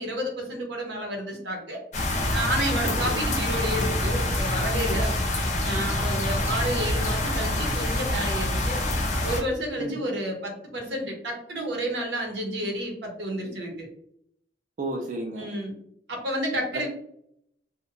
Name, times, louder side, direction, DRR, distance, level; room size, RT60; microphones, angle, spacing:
voice 1, 0.0-1.8 2.3-5.1 5.6-8.8 9.2-13.9 15.4-15.7 16.1-16.9, right 1 dB, 85° right, 0 dB, 0.8 m, -30 dB
sound 1, 1.9-9.4, left 1 dB, 40° left, 0.5 m, -26 dB
voice 2, 2.8-3.3 9.8-10.0 14.8-15.5, right 1 dB, 45° right, 0 dB, 0.3 m, -33 dB
2.7 x 2.1 x 2.5 m, 0.70 s
head